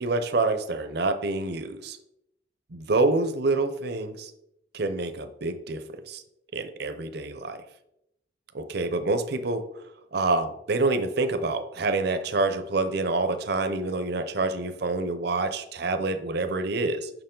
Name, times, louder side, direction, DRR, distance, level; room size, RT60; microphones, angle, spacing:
voice 1, 0.0-2.0 2.7-4.3 4.7-6.2 6.5-7.6 8.5-9.6 10.1-17.1, right 3 dB, 60° right, 10 dB, 0.7 m, -27 dB
6.8 x 6.0 x 3.8 m, 0.82 s
head